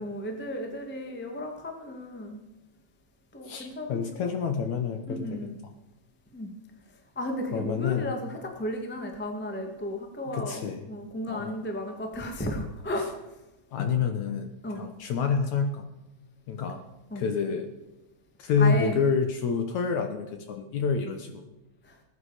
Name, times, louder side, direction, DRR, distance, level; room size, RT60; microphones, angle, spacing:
voice 1, 0.0-2.4 3.3-4.0 5.1-5.6 6.3-6.5 7.1-13.3 14.6-14.8 17.1-17.2 18.6-19.0 21.8-22.0, left 1 dB, 5° left, 3 dB, 0.8 m, -34 dB
voice 2, 3.5-5.4 5.6-5.7 7.5-8.2 10.3-10.9 11.3-11.6 13.7-14.5 14.8-15.9 16.5-16.8 17.2-17.7 18.4-21.4, left 5 dB, 65° left, 6 dB, 2.0 m, -28 dB
20.0 x 9.8 x 5.0 m, 0.99 s
omnidirectional pair, 4.3 m